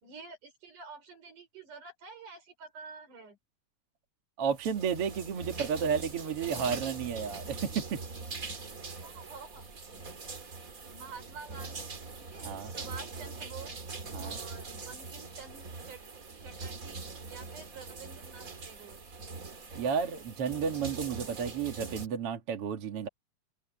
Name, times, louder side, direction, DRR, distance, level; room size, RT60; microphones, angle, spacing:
voice 1, 0.0-3.4 9.0-10.0 10.9-11.9 12.2-13.8 14.2-16.1 16.4-19.0, right 4 dB, 70° right, 6.4 m, -49 dB
voice 2, 4.4-8.0 12.4-12.7 14.1-14.4 19.7-23.1, right 7 dB, 50° right, 2.5 m, -32 dB
sound 1, 4.5-22.1, right 4 dB, 30° right, 2.2 m, -42 dB
omnidirectional pair, 3.7 m